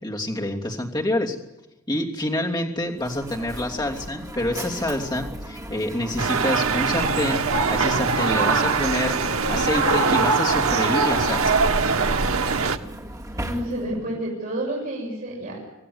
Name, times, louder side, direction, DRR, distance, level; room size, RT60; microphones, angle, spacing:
voice 1, 0.0-1.4 1.9-7.4 7.7-9.1 9.5-11.5, left 1 dB, 20° left, -2 dB, 3.0 m, -27 dB
Mechanisms, 2.9-14.1, right 1 dB, 15° right, 2.2 m, -37 dB
sound 1, 6.2-12.8, right 4 dB, 75° right, 1.3 m, -22 dB
voice 2, 13.3-15.7, right 1 dB, 40° right, -5 dB, 7.3 m, -30 dB
26.5 x 16.0 x 9.7 m, 0.98 s
head